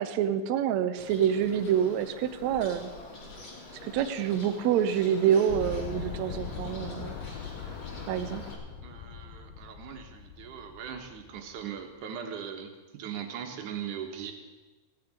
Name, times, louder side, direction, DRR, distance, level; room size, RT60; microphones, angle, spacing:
voice 1, 0.0-2.9 3.8-7.2 8.1-8.4, right 9 dB, 90° right, 9 dB, 1.5 m, -27 dB
Bird, 1.0-8.5, left 3 dB, 40° left, 2.9 m, -45 dB
sound 1, 5.5-11.8, left 7 dB, 75° left, 2.4 m, -41 dB
voice 2, 8.8-14.3, right 8 dB, 60° right, 4 dB, 2.7 m, -39 dB
16.5 x 6.9 x 9.5 m, 1.3 s
omnidirectional pair, 4.2 m